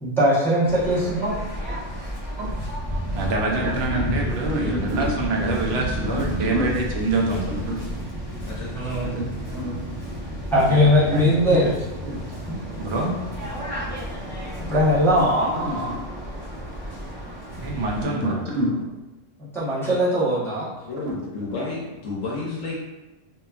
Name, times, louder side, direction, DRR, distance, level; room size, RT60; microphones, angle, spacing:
voice 1, 0.0-1.4 8.7-9.2 10.5-11.7 14.7-15.5 19.4-20.7, equal, 5° left, -11 dB, 0.5 m, -20 dB
Waves surf, 0.6-18.0, equal, 25° right, 0.8 m, -32 dB
voice 2, 3.1-7.6 10.5-11.2 12.8-13.2 17.1-17.3 17.6-18.4, right 2 dB, 65° right, 0 dB, 0.7 m, -26 dB
voice 3, 4.7-5.0 6.1-6.6 9.0-9.9 12.1-12.2 15.5-16.0 18.2-18.7 21.0-21.1, equal, 85° right, -3 dB, 1.1 m, -28 dB
voice 4, 8.5-9.2 20.8-22.8, left 3 dB, 70° left, -4 dB, 0.9 m, -32 dB
2.7 x 2.2 x 2.3 m, 1.1 s
omnidirectional pair, 1.3 m